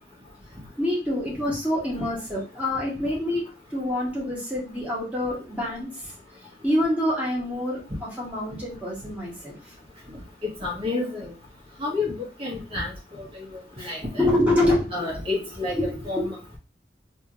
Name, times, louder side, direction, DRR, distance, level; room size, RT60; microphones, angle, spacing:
voice 1, 0.8-3.4 3.7-6.1 6.6-9.7 14.1-15.0 15.7-16.3, left 1 dB, 10° right, -6 dB, 1.7 m, -26 dB
voice 2, 10.4-11.3 11.8-14.2 14.9-15.8 16.0-16.6, left 3 dB, 30° right, -3 dB, 1.6 m, -30 dB
3.4 x 2.7 x 3.1 m, 0.32 s
head